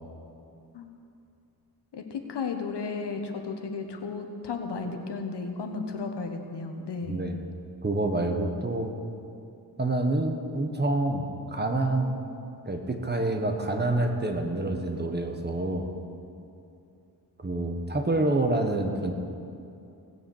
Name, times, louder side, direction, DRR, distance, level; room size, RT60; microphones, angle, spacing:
voice 1, 1.9-7.3, left 4 dB, 75° left, 5 dB, 1.3 m, -34 dB
voice 2, 7.1-7.4 7.8-8.9 9.8-12.2 12.7-15.9 17.4-19.1, right 2 dB, 25° right, 4 dB, 1.3 m, -27 dB
17.0 x 7.1 x 7.2 m, 2.6 s
wide cardioid pair, 90°, 41 cm